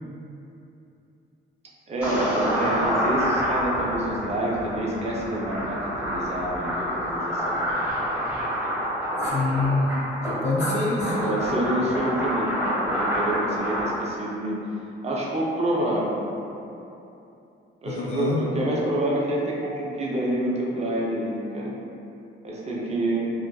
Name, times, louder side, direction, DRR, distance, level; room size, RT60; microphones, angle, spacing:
voice 1, 1.9-7.6 10.6-10.9 11.2-14.6 15.0-16.2 17.8-21.7 22.4-23.3, right 1 dB, 35° right, -4 dB, 0.5 m, -27 dB
sound 1, 2.0-13.9, equal, 5° right, 1.1 m, -27 dB
voice 2, 9.2-11.4 17.8-18.4, left 3 dB, 35° left, -4 dB, 0.4 m, -26 dB
2.4 x 2.3 x 2.3 m, 2.8 s
cardioid pair, 90°, 20 cm